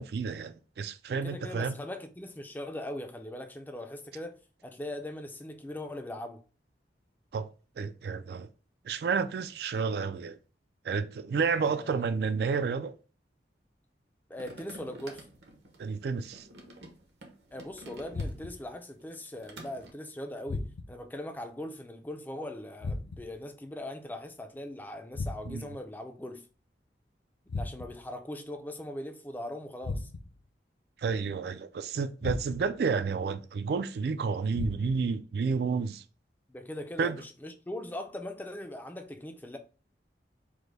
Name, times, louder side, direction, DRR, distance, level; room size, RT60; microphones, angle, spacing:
voice 1, 0.0-1.8 7.3-7.5 7.8-8.5 8.9-10.4 10.8-12.9 15.8-16.5 25.5-25.7 31.0-36.0 37.0-37.2, right 5 dB, 60° right, 0.3 m, -30 dB
voice 2, 1.2-6.4 11.4-12.1 14.3-15.2 17.5-26.5 27.5-30.1 36.5-39.6, left 1 dB, 10° left, 0.4 m, -40 dB
sound 1, 14.3-18.7 19.0-19.9, right 1 dB, 75° right, 1.0 m, -49 dB
sound 2, 18.1-18.8 20.5-21.1 22.8-23.4 25.1-25.8 27.5-28.1 29.8-30.5 32.2-32.8 34.5-35.2, left 3 dB, 70° left, 0.5 m, -37 dB
4.9 x 2.2 x 3.9 m
head